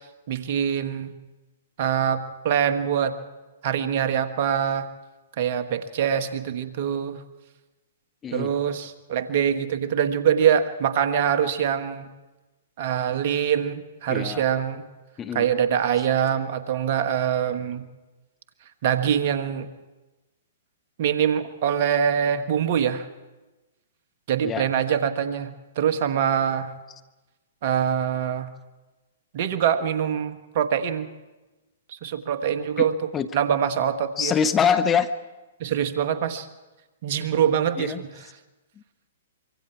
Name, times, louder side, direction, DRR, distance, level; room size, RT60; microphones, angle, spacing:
voice 1, 0.3-1.1 1.8-3.2 3.6-4.9 5.4-7.2 8.3-12.1 12.8-14.9 15.3-17.9 18.8-19.7 21.0-23.1 24.3-25.5 25.8-26.7 27.6-28.5 29.3-31.1 32.0-32.9 33.3-34.3 35.6-36.5 37.0-38.3, right 8 dB, 50° right, 9 dB, 1.4 m, -24 dB
voice 2, 8.2-8.5 14.1-14.4 15.2-15.5 24.4-24.7 32.8-32.9 33.1-33.3 34.2-35.1 37.8-38.0, left 7 dB, 20° left, 12 dB, 0.8 m, -24 dB
25.0 x 24.0 x 4.6 m, 1.1 s
hypercardioid pair, 125°, 0 cm